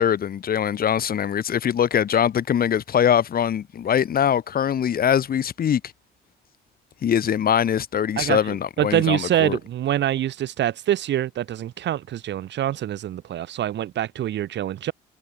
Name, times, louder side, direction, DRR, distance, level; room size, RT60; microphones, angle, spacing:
voice 1, 0.0-5.8 7.0-9.6, left 9 dB, 50° left, 1.4 m, -22 dB
voice 2, 8.8-14.9, right 12 dB, 65° right, 3.0 m, -25 dB
supercardioid pair, 75°, 20 cm